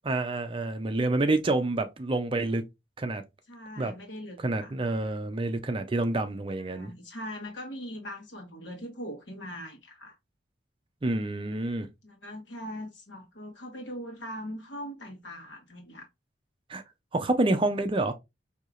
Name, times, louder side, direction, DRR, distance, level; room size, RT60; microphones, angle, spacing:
voice 1, 0.0-2.6 3.0-3.2 3.8-3.9 4.4-6.9 11.0-11.9 16.7-16.8 17.1-18.1, right 2 dB, 30° right, 0.5 m, -28 dB
voice 2, 3.5-4.7 6.5-10.2 12.0-16.1, equal, 90° left, 1.3 m, -41 dB
4.6 x 2.8 x 2.5 m
head